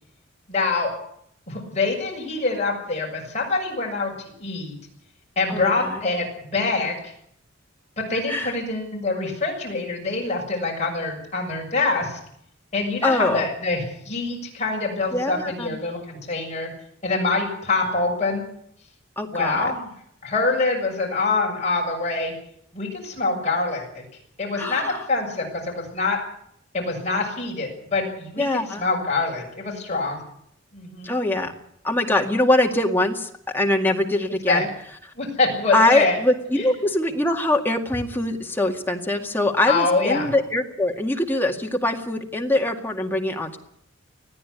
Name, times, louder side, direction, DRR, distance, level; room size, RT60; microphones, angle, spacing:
voice 1, 0.5-0.9 1.5-4.1 4.4-4.8 5.4-7.1 8.0-12.2 12.7-16.7 17.0-18.4 19.3-19.9 20.2-22.3 22.7-24.0 24.4-26.2 26.7-28.5 28.8-30.2 30.7-31.2 34.5-34.7 35.2-36.2 36.6-36.7 39.7-40.3, left 3 dB, 35° left, -1 dB, 6.9 m, -25 dB
voice 2, 5.5-6.0 8.3-8.5 13.0-13.5 15.1-15.8 19.2-19.7 24.6-25.1 28.4-28.8 31.0-31.5 31.8-34.7 35.7-43.6, left 1 dB, 10° left, 2 dB, 2.1 m, -23 dB
20.5 x 14.0 x 9.8 m, 0.69 s
head